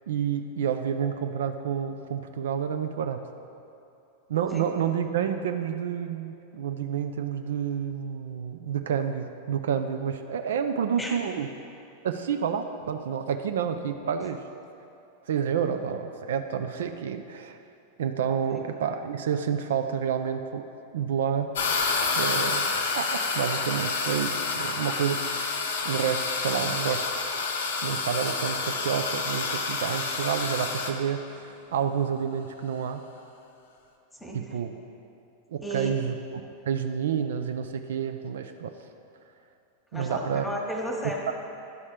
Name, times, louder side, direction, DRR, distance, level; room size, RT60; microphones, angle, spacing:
voice 1, 0.0-3.3 4.3-11.5 12.0-14.4 15.3-17.6 18.0-20.6 20.9-21.5 22.2-22.7 23.0-25.5 25.8-27.1 27.8-33.0 34.3-34.7 35.5-36.2 36.7-38.7 39.9-40.5 41.3-41.4, right 8 dB, 60° right, 7 dB, 0.3 m, -29 dB
sound 1, 21.6-30.9, left 4 dB, 60° left, 0.7 m, -29 dB
voice 2, 34.1-34.6 35.6-35.9 39.9-41.3, right 1 dB, 10° left, 0 dB, 1.2 m, -33 dB
11.5 x 4.2 x 4.9 m, 2.6 s
figure-of-eight pair, 90°, 0 cm